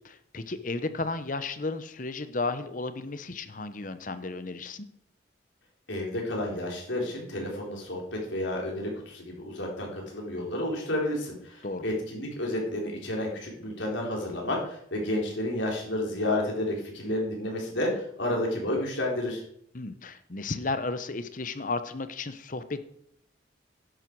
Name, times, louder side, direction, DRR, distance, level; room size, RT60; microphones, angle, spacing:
voice 1, 0.0-4.8 11.6-11.8 19.7-22.9, left 3 dB, 45° left, 11 dB, 0.9 m, -33 dB
voice 2, 5.9-19.4, left 1 dB, 85° left, -1 dB, 3.9 m, -31 dB
11.5 x 11.0 x 4.7 m, 0.70 s
head